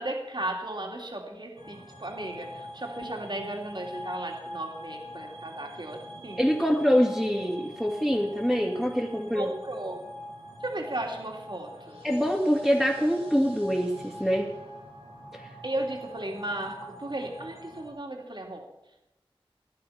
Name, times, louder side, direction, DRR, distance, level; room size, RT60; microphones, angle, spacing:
voice 1, 0.0-6.4 9.3-10.0 10.6-12.0 15.6-18.7, right 1 dB, 50° right, 1 dB, 2.9 m, -35 dB
sound 1, 1.6-17.9, equal, 90° right, 3.7 m, -44 dB
voice 2, 6.4-9.5 12.0-14.5 15.3-15.4, equal, 5° left, -5 dB, 2.4 m, -25 dB
17.0 x 11.0 x 5.9 m, 0.93 s
wide cardioid pair, 50°, 10 cm